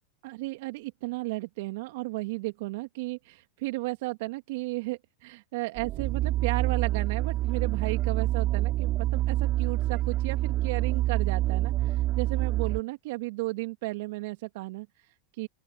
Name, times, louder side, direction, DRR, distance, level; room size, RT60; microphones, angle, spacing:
voice 1, 0.2-15.5, right 22 dB, 65° right, 1.8 m, -34 dB
sound 1, 5.8-12.8, right 15 dB, 45° right, 2.8 m, -27 dB
open air
hypercardioid pair, 100°, 0 cm